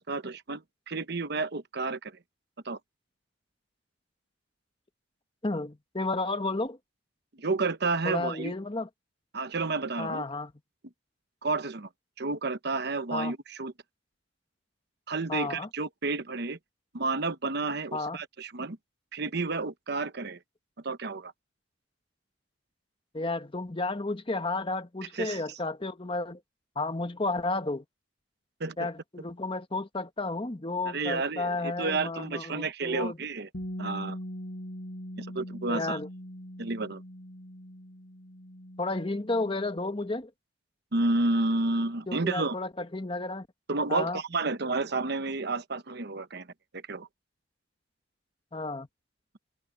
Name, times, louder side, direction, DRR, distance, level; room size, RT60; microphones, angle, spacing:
voice 1, 0.0-2.2 2.6-2.8 7.4-8.5 9.3-10.2 11.4-11.9 12.2-13.7 15.1-16.6 16.9-18.8 19.1-20.4 20.8-21.3 25.1-25.4 28.6-28.9 30.9-33.5 33.8-34.2 35.2-36.0 36.6-37.0 40.9-42.5 43.7-46.5 46.7-47.1, right 3 dB, 55° right, 1.1 m, -31 dB
voice 2, 5.4-6.8 8.0-8.9 10.0-10.5 13.1-13.3 15.3-15.7 17.9-18.2 23.1-26.4 26.7-27.8 28.8-33.2 35.7-36.1 38.8-40.3 42.1-43.5 43.9-44.2 48.5-48.9, left 2 dB, 25° left, 1.1 m, -32 dB
Bass guitar, 33.5-39.8, equal, 60° left, 5.0 m, -41 dB
head